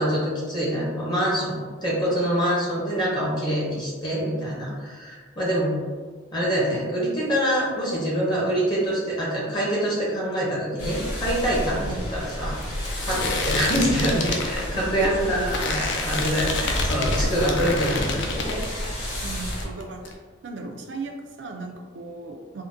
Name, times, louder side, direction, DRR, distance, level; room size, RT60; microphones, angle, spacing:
voice 1, 0.0-5.8 6.3-12.6 13.0-18.6, equal, 20° left, -5 dB, 0.7 m, -25 dB
sound 1, 10.8-19.6, equal, 85° left, 1.2 m, -31 dB
sound 2, 11.6-19.2 19.4-20.1, left 3 dB, 65° left, 0.4 m, -29 dB
voice 2, 11.7-12.0 14.7-15.6 19.2-20.0 20.4-22.6, right 3 dB, 65° right, 3 dB, 0.4 m, -36 dB
3.6 x 2.1 x 2.6 m, 1.5 s
head